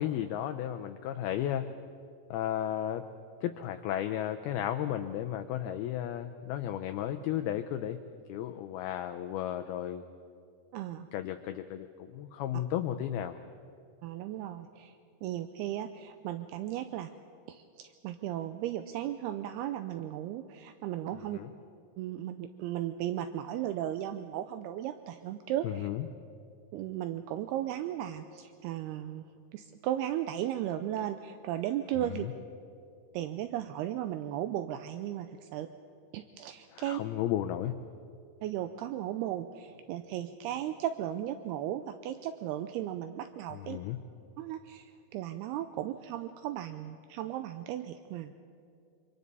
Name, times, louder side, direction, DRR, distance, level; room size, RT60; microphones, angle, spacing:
voice 1, 0.0-1.6 2.3-3.1 3.4-8.0 8.3-10.0 11.1-13.4 21.1-21.5 25.6-26.1 32.0-32.3 36.7-37.7 43.5-44.0, left 11 dB, 90° left, 7 dB, 2.2 m, -34 dB
voice 2, 10.7-11.1 14.0-14.9 15.2-17.1 17.5-21.4 22.0-25.9 26.7-29.2 29.5-32.3 33.1-35.7 36.1-37.0 38.4-43.8 44.4-48.3, right 12 dB, 85° right, 9 dB, 2.3 m, -36 dB
28.0 x 25.5 x 4.1 m, 2.5 s
omnidirectional pair, 5.2 m